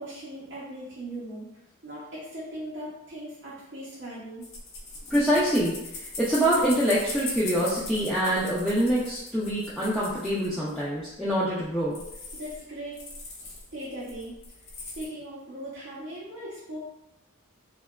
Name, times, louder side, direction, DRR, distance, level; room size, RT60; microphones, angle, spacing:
voice 1, 0.0-1.5 1.8-4.4 12.3-13.0 13.4-14.3 15.0-16.8, right 1 dB, 55° right, -9 dB, 0.6 m, -39 dB
sound 1, 4.4-10.8 11.3-11.4 11.6-11.7 11.9-12.6 12.9-15.1, left 3 dB, 75° left, 0.6 m, -40 dB
voice 2, 5.1-12.0, equal, ahead, -10 dB, 0.3 m, -25 dB
2.7 x 2.2 x 2.2 m, 0.87 s
head